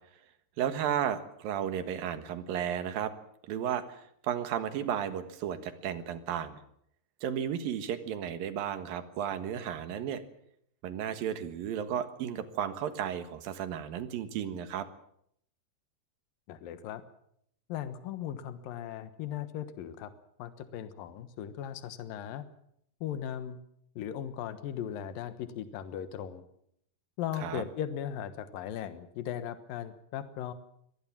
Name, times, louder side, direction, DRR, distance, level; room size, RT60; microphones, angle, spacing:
voice 1, 0.6-3.1 3.4-6.6 7.2-10.2 10.8-14.9 27.4-27.6, right 9 dB, 85° right, 10 dB, 3.3 m, -33 dB
voice 2, 16.5-17.0 17.7-20.1 20.4-22.4 23.0-23.6 24.0-26.4 27.2-30.5, left 10 dB, 80° left, 11 dB, 3.0 m, -38 dB
24.0 x 18.5 x 7.4 m, 0.70 s
omnidirectional pair, 4.0 m